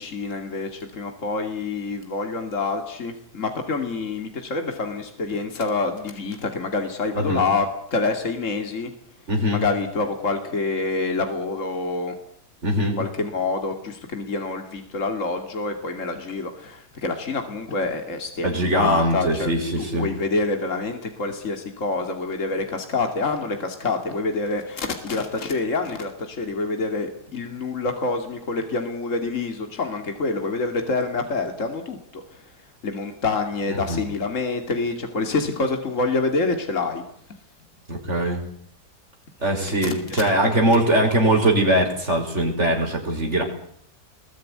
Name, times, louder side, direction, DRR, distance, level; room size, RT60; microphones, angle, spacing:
voice 1, 0.0-8.9 9.5-12.2 12.8-32.5 32.8-37.0 39.4-41.2, left 3 dB, 50° left, 5 dB, 3.0 m, -27 dB
voice 2, 9.3-9.6 12.6-13.0 18.4-20.1 33.9-34.0 37.9-38.4 39.4-43.4, right 1 dB, 40° right, 2 dB, 5.9 m, -21 dB
24.5 x 21.5 x 9.7 m, 0.66 s
omnidirectional pair, 1.7 m